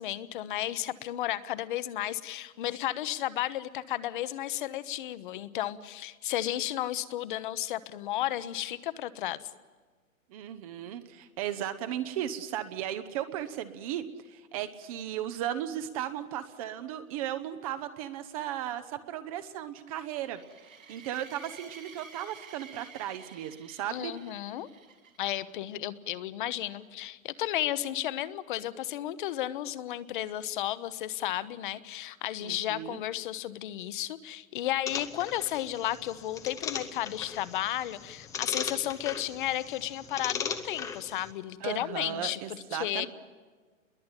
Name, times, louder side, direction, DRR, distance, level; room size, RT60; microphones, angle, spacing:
voice 1, 0.0-9.4 23.9-24.7 25.2-43.1, left 13 dB, 35° left, 16 dB, 1.1 m, -33 dB
voice 2, 10.3-20.4 20.9-24.1 32.4-33.0 41.6-43.1, right 11 dB, 25° right, 10 dB, 0.9 m, -36 dB
sound 1, 20.1-25.4, right 5 dB, 70° right, 5.7 m, -51 dB
sound 2, 34.9-41.3, left 7 dB, 10° left, 0.8 m, -38 dB
29.5 x 21.5 x 9.1 m, 1.4 s
hypercardioid pair, 150°, 42 cm